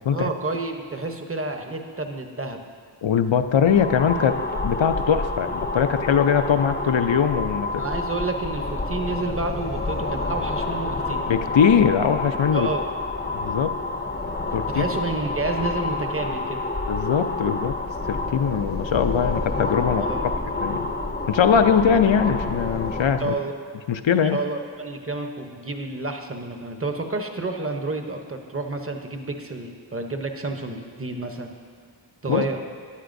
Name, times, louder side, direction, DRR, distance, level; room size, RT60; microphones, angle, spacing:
voice 1, 0.1-2.6 7.8-11.3 12.5-12.9 14.7-16.6 20.0-20.2 23.2-23.6 24.2-31.5 32.2-32.6, right 3 dB, 30° right, 4 dB, 0.8 m, -30 dB
voice 2, 3.0-4.4 4.6-7.8 11.3-12.7 13.3-13.7 14.5-14.9 16.9-17.7 18.1-20.1 20.6-20.8 21.3-23.3 23.9-24.4 32.3-32.5, left 7 dB, 70° left, 9 dB, 0.6 m, -21 dB
sound 1, 3.5-23.3, left 2 dB, 20° left, 0.6 m, -28 dB
12.5 x 10.0 x 2.6 m, 2.1 s
wide cardioid pair, 45°, 47 cm